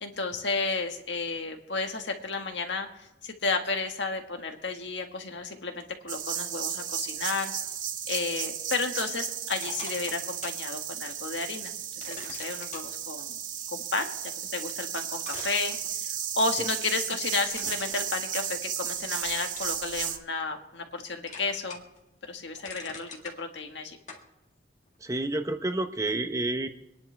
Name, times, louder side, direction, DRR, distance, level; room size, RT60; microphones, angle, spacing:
voice 1, 0.0-7.5 8.1-13.4 13.7-14.1 14.5-21.8 22.3-23.1 23.4-24.0, left 3 dB, 70° left, 4 dB, 1.7 m, -32 dB
sound 1, 6.1-20.2, right 9 dB, 45° right, 0.9 m, -34 dB
sound 2, 9.6-10.6 11.1-11.2 12.0-12.9 14.7-14.8 15.2-16.3 17.5-18.8 19.3-19.8 20.3-21.0 21.3-22.0 22.3-23.4 24.1-24.3, left 4 dB, 40° left, 1.9 m, -44 dB
voice 2, 25.0-26.7, right 2 dB, 20° right, 7 dB, 0.8 m, -29 dB
26.0 x 10.5 x 3.4 m, 0.95 s
head